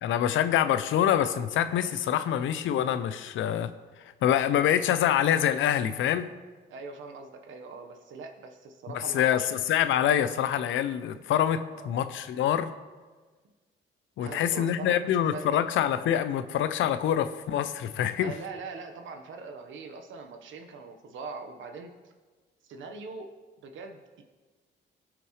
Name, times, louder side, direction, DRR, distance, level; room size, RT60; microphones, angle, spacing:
voice 1, 0.0-3.7 4.0-6.3 8.9-12.7 14.2-18.3, left 10 dB, 80° left, 12 dB, 0.6 m, -26 dB
voice 2, 6.7-9.5 11.7-11.9 14.2-15.5 18.2-22.1 22.6-23.3 23.6-24.2, right 4 dB, 75° right, 5 dB, 1.2 m, -42 dB
17.5 x 6.0 x 3.2 m, 1.4 s
cardioid pair, 90°, 20 cm